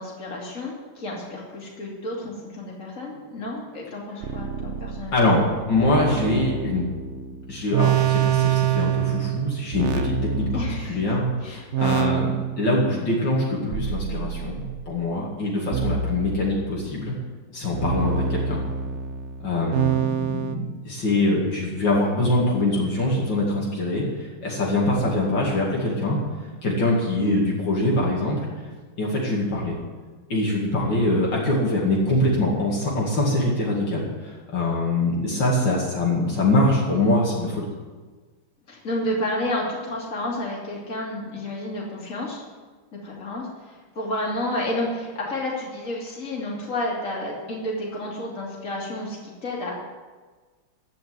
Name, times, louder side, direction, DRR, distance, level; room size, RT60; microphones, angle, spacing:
voice 1, 0.0-5.2 10.5-11.0 11.4-12.0 38.7-42.4 43.0-49.7, left 1 dB, 40° left, -3 dB, 3.2 m, -31 dB
sound 1, 4.2-11.2 11.7-12.9 13.7-14.9 15.7-16.9 17.7-20.5, right 8 dB, 60° right, 0.7 m, -26 dB
voice 2, 5.1-5.4 5.7-6.8 7.5-17.1 17.5-18.6 19.4-26.2 26.6-28.5 29.0-29.7 30.3-37.7, left 2 dB, 60° left, -4 dB, 3.0 m, -23 dB
15.0 x 5.9 x 9.5 m, 1.4 s
omnidirectional pair, 2.2 m